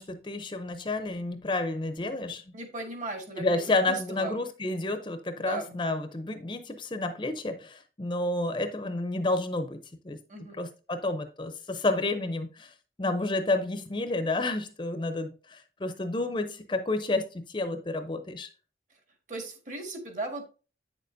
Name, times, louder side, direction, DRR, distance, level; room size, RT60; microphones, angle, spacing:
voice 1, 0.0-2.4 3.4-9.8 10.0-10.2 10.6-12.7 13.0-18.5, left 2 dB, 25° left, 9 dB, 0.5 m, -30 dB
voice 2, 2.5-3.6 3.9-4.4 5.4-5.7 10.3-10.6 19.3-20.5, right 2 dB, 45° right, 5 dB, 1.6 m, -37 dB
8.7 x 6.7 x 2.6 m, 0.34 s
head